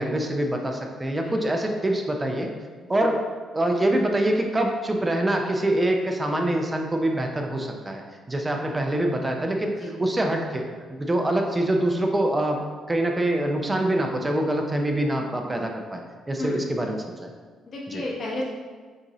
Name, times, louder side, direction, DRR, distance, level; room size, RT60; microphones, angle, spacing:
voice 1, 0.0-2.5 2.9-3.2 3.5-9.7 10.0-10.6 10.9-16.0 16.3-17.3 17.9-18.0, right 1 dB, 20° right, 2 dB, 0.5 m, -25 dB
voice 2, 17.6-18.4, left 1 dB, 50° left, -4 dB, 0.9 m, -32 dB
6.2 x 2.6 x 3.0 m, 1.5 s
cardioid pair, 90°, 0 cm